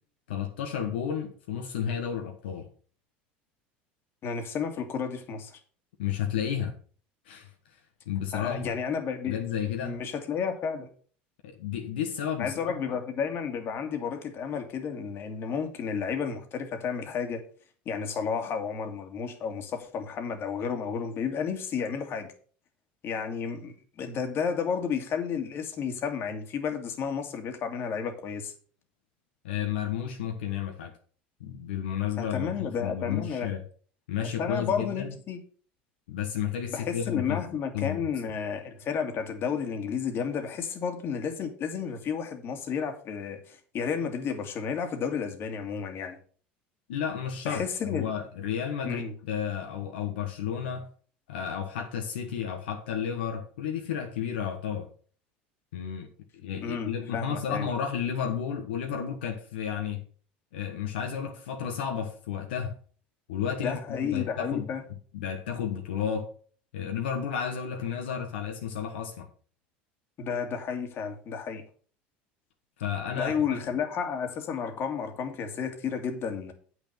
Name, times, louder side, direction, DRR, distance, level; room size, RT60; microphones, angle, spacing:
voice 1, 0.3-2.7 6.0-6.7 7.3-7.5 8.1-8.8 9.2-10.0 11.4-13.0 29.4-30.9 31.4-33.6 34.1-35.1 36.1-37.4 37.7-38.1 46.9-50.9 51.3-54.9 55.7-56.1 56.3-60.0 60.5-62.8 63.3-64.7 65.1-66.3 66.7-69.3 72.8-73.6, left 8 dB, 80° left, 1.3 m, -32 dB
voice 2, 4.2-5.6 8.3-9.4 9.8-10.9 12.4-17.4 17.9-22.3 23.0-28.5 32.2-33.5 34.4-35.4 36.7-46.2 47.5-48.1 48.8-49.1 56.6-57.7 63.6-64.8 70.2-71.6 73.2-76.5, left 6 dB, 45° left, 2.2 m, -32 dB
8.4 x 6.3 x 5.8 m
hypercardioid pair, 85°, 5 cm